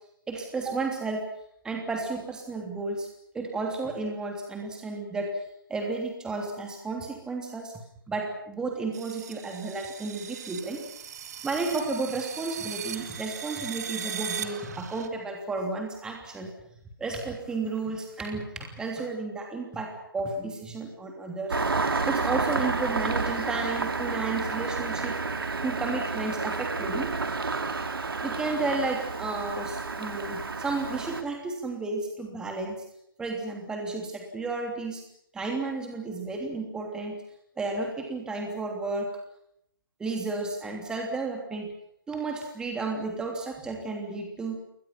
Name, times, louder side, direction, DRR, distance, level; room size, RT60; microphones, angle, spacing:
voice 1, 0.3-1.2 1.6-3.1 3.3-5.3 5.7-7.7 8.1-10.8 11.4-16.5 17.0-21.5 22.0-25.1 25.6-27.1 28.2-32.8 33.2-35.0 35.3-37.2 37.6-39.1 40.0-41.7 42.1-44.6, right 3 dB, 5° right, 1 dB, 3.1 m, -32 dB
sound 1, 8.9-15.1, right 8 dB, 45° right, 2.2 m, -38 dB
Engine starting, 21.5-31.2, right 4 dB, 75° right, 2.9 m, -30 dB
29.0 x 23.0 x 5.9 m, 0.74 s
figure-of-eight pair, 145°, 12 cm